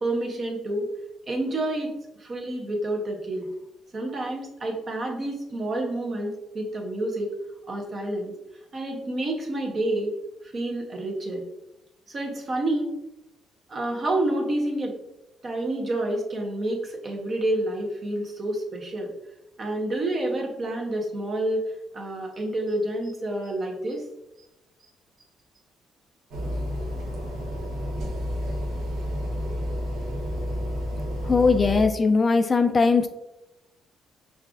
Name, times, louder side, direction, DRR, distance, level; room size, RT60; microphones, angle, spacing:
voice 1, 0.0-0.9 1.3-1.9 2.2-3.5 3.9-7.3 7.7-8.3 8.7-10.1 10.4-11.5 12.1-13.0 13.7-15.0 15.4-19.1 19.6-21.7 21.9-24.0, right 1 dB, 40° right, 0 dB, 0.9 m, -28 dB
sound 1, 26.3-31.8, equal, 75° right, 0.8 m, -30 dB
voice 2, 31.2-33.1, left 4 dB, 35° left, 8 dB, 0.3 m, -20 dB
5.4 x 2.5 x 2.4 m, 0.91 s
cardioid pair, 90°, 0 cm